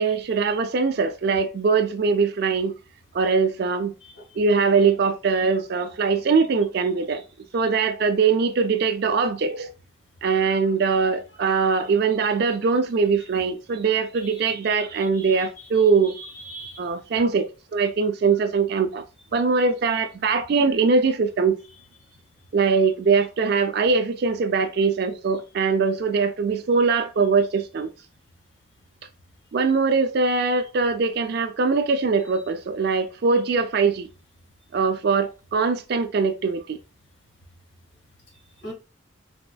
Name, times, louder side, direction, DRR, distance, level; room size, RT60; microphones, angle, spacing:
voice 1, 0.0-2.8 3.1-3.9 4.4-7.2 7.5-9.7 10.2-16.2 16.8-19.0 19.3-21.6 22.5-27.9 29.5-34.1 34.7-36.8, right 5 dB, 55° right, 0.4 m, -22 dB
voice 2, 14.2-14.8 15.2-15.5 16.2-16.8 38.6-38.7, right 1 dB, 70° left, 1.8 m, -40 dB
4.1 x 3.4 x 2.2 m
head